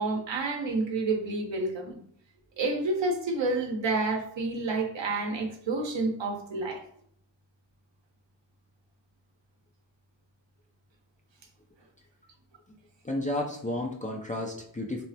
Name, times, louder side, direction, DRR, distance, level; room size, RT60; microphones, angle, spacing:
voice 1, 0.0-2.0 2.6-6.8, right 3 dB, 70° right, 2 dB, 0.8 m, -29 dB
voice 2, 13.0-15.0, left 1 dB, 20° left, 0 dB, 0.3 m, -32 dB
3.3 x 2.0 x 2.7 m, 0.64 s
cardioid pair, 55°, 47 cm